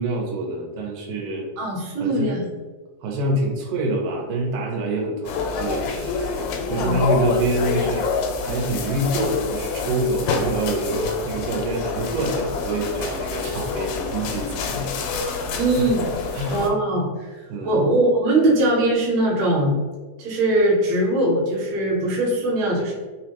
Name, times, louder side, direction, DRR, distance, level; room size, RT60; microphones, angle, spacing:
voice 1, 0.0-1.5 2.0-2.3 3.0-8.1 8.4-15.9 16.3-16.7 17.5-17.8, right 2 dB, 90° right, -1 dB, 2.3 m, -26 dB
voice 2, 1.6-2.4 6.6-7.0 15.5-16.2 16.5-17.1 17.6-19.8 20.2-22.9, right 1 dB, 70° right, -3 dB, 2.0 m, -21 dB
sound 1, 5.2-16.7, left 4 dB, 90° left, 2.1 m, -27 dB
5.0 x 2.1 x 2.8 m, 1.3 s
omnidirectional pair, 3.6 m